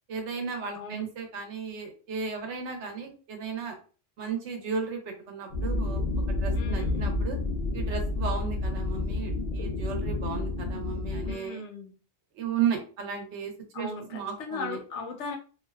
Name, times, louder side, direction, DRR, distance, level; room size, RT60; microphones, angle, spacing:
voice 1, 0.1-3.8 4.2-7.4 7.7-11.6 12.3-14.8, right 6 dB, 85° right, 4 dB, 1.0 m, -34 dB
sound 1, 5.5-11.3, left 2 dB, 60° left, 0.6 m, -29 dB
voice 2, 6.5-7.2 11.2-11.9 13.7-15.4, left 4 dB, 85° left, 3 dB, 0.9 m, -38 dB
2.6 x 2.1 x 2.2 m, 0.38 s
omnidirectional pair, 1.2 m